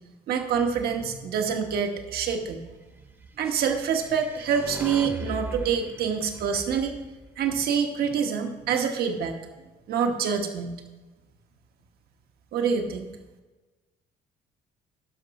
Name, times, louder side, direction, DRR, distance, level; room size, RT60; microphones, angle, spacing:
voice 1, 0.3-2.6 3.4-7.0 7.4-9.4 9.9-10.8 12.5-13.1, right 6 dB, 65° right, 5 dB, 1.3 m, -26 dB
sound 1, 3.7-8.0, right 2 dB, 10° right, 0.9 m, -40 dB
11.5 x 6.0 x 5.3 m, 1.2 s
cardioid pair, 110°, 17 cm